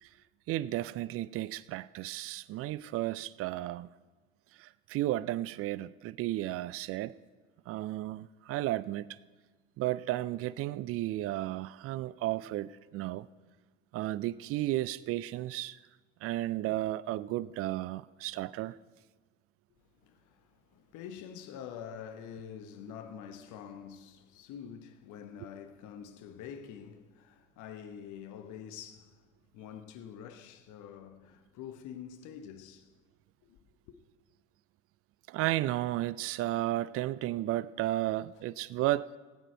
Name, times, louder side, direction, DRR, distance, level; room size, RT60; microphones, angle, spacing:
voice 1, 0.5-3.9 4.6-7.1 7.7-9.2 9.8-13.3 13.9-15.8 16.2-18.8 35.3-39.1, right 15 dB, 40° right, 0.4 m, -33 dB
voice 2, 20.0-29.3 29.5-32.9 33.4-33.6, left 8 dB, 50° left, 1.1 m, -46 dB
18.0 x 9.1 x 4.4 m
hypercardioid pair, 75°, 38 cm